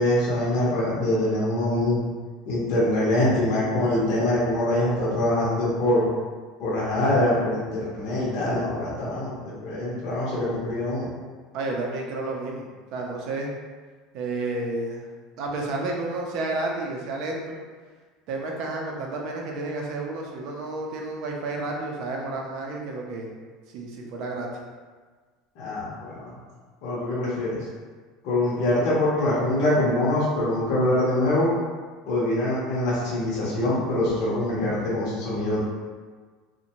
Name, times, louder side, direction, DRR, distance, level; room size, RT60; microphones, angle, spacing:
voice 1, 0.0-2.0 2.5-6.1 6.6-11.1 25.6-26.4 26.8-27.6 28.2-31.5 32.1-35.6, left 1 dB, 50° left, -7 dB, 0.7 m, -24 dB
voice 2, 11.5-13.5 14.1-15.1 15.4-17.6 18.3-23.3 23.7-24.5, right 2 dB, 50° right, 0 dB, 0.4 m, -31 dB
2.5 x 2.1 x 2.8 m, 1.5 s
cardioid pair, 170°, 0 cm